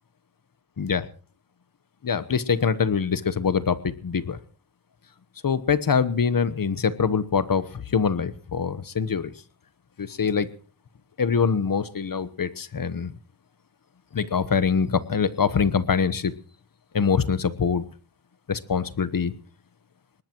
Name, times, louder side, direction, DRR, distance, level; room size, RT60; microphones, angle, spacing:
voice 1, 0.8-1.1 2.0-4.4 5.4-9.3 10.0-10.5 11.2-13.1 14.1-16.3 16.9-17.8 18.5-19.3, left 6 dB, 45° left, 15 dB, 1.1 m, -24 dB
22.5 x 19.5 x 3.1 m, 0.39 s
cardioid pair, 55°, 46 cm